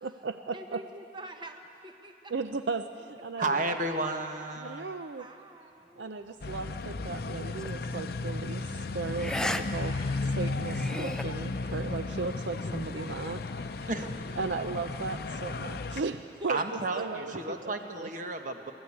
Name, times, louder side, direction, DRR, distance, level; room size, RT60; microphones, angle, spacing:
voice 1, 0.0-0.8 2.3-3.8 4.6-5.3 6.0-8.7 8.9-9.9 10.3-13.4 14.4-18.1, right 4 dB, 75° right, 9 dB, 0.6 m, -36 dB
voice 2, 0.5-2.3 3.4-4.1 5.2-6.1 8.7-8.8 11.7-11.9 13.7-13.9 16.4-16.7, right 1 dB, 25° right, 5 dB, 1.1 m, -47 dB
voice 3, 3.4-4.9 13.9-14.0 16.5-18.7, right 2 dB, 45° right, 5 dB, 1.2 m, -32 dB
sound 1, 6.4-16.0, left 3 dB, 55° left, 0.6 m, -34 dB
sound 2, 7.6-7.8 9.2-9.6 10.0-10.1 10.6-11.2, left 1 dB, 5° left, 0.5 m, -33 dB
22.5 x 14.5 x 8.6 m, 2.9 s
head